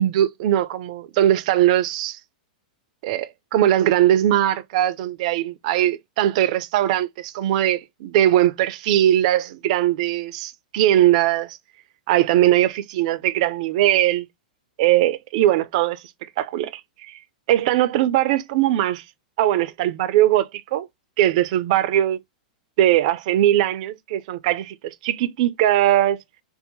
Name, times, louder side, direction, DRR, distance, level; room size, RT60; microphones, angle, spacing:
voice 1, 0.0-2.2 3.0-11.6 12.1-14.3 14.8-16.0 16.4-17.2 17.5-19.0 19.4-20.9 21.2-22.2 22.8-26.2, right 12 dB, 55° right, 0.4 m, -20 dB
2.7 x 2.0 x 2.7 m
hypercardioid pair, 115°, 4 cm